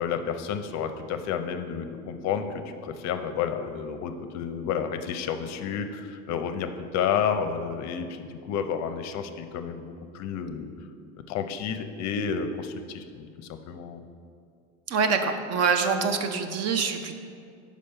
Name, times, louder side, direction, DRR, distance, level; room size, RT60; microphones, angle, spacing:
voice 1, 0.0-10.7 11.3-14.0, left 7 dB, 50° left, 8 dB, 0.5 m, -31 dB
voice 2, 14.9-17.1, right 5 dB, 45° right, 7 dB, 0.7 m, -25 dB
5.2 x 5.1 x 5.6 m, 2.3 s
supercardioid pair, 95°, 36 cm